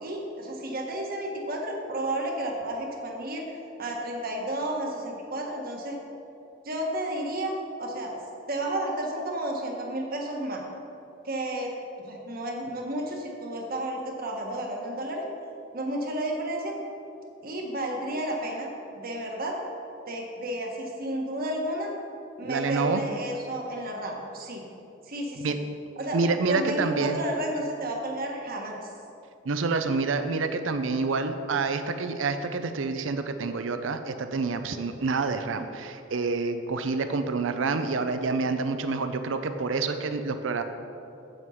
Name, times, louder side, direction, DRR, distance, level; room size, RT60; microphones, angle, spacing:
voice 1, 0.0-3.5 3.8-6.0 6.6-7.5 7.8-8.2 8.5-10.6 11.2-11.8 12.0-15.2 15.7-16.7 17.4-19.6 20.1-21.9 22.4-24.6 25.1-25.5 26.0-26.2 26.5-28.8, right 1 dB, 50° right, 1 dB, 1.4 m, -32 dB
voice 2, 22.4-23.0 25.4-25.6 26.1-27.2 29.4-40.6, right 4 dB, 70° right, 8 dB, 0.5 m, -28 dB
7.9 x 7.7 x 5.6 m, 2.8 s
head